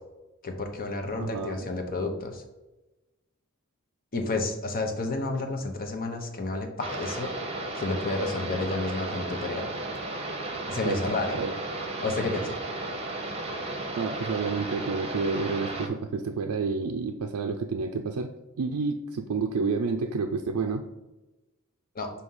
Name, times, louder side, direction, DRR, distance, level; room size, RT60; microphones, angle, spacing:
voice 1, 0.4-2.4 4.1-7.3 7.7-9.7 10.7-11.4 12.0-12.5 21.9-22.1, left 2 dB, 40° left, 4 dB, 0.9 m, -30 dB
voice 2, 1.2-1.7 10.8-11.0 11.4-11.5 14.0-18.3 18.6-20.8, right 4 dB, 85° right, 4 dB, 0.4 m, -29 dB
sound 1, 6.8-15.9, right 2 dB, 30° right, 0.8 m, -34 dB
6.2 x 2.8 x 5.4 m, 1.0 s
head